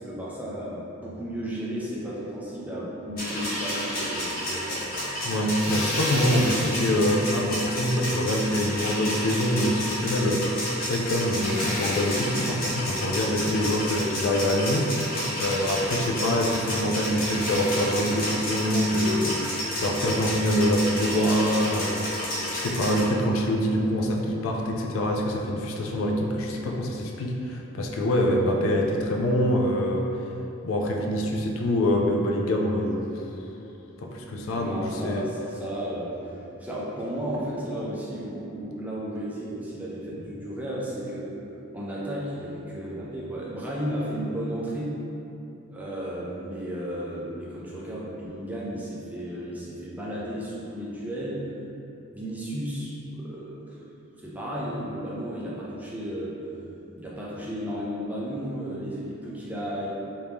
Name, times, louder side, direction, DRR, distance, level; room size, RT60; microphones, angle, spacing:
voice 1, 0.0-4.8 34.5-41.3 41.7-44.9 45.7-51.4 52.1-53.8 54.2-56.3 57.0-59.9, equal, 5° right, -6 dB, 0.3 m, -33 dB
sound 1, 3.2-23.0, equal, 40° left, 0.8 m, -30 dB
voice 2, 5.2-14.9 15.4-30.1 30.6-33.0 34.0-35.2, equal, 70° left, 0 dB, 0.4 m, -25 dB
3.1 x 2.7 x 3.4 m, 2.9 s
head